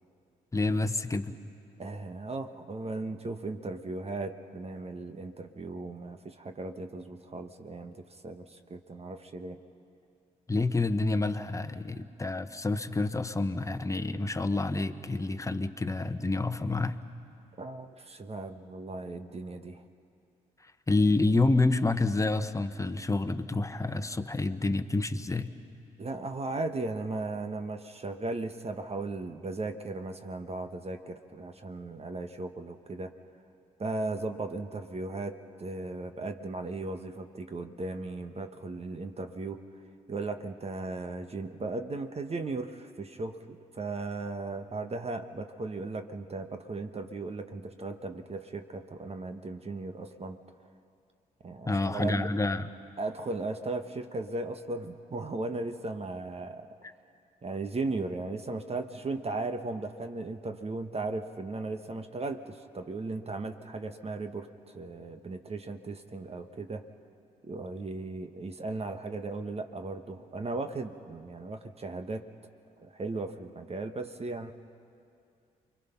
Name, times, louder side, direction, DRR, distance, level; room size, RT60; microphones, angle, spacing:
voice 1, 0.5-1.3 10.5-17.0 20.6-25.5 51.7-52.7 56.8-56.9, left 2 dB, 15° left, 9 dB, 1.2 m, -28 dB
voice 2, 1.8-8.0 8.2-9.6 17.6-19.8 26.0-33.1 33.8-39.6 40.1-50.4 51.4-52.3 53.0-56.7 57.4-66.8 67.4-72.3 72.8-74.5, right 3 dB, 35° right, 7 dB, 1.3 m, -37 dB
28.5 x 22.5 x 5.8 m, 2.5 s
hypercardioid pair, 50°, 18 cm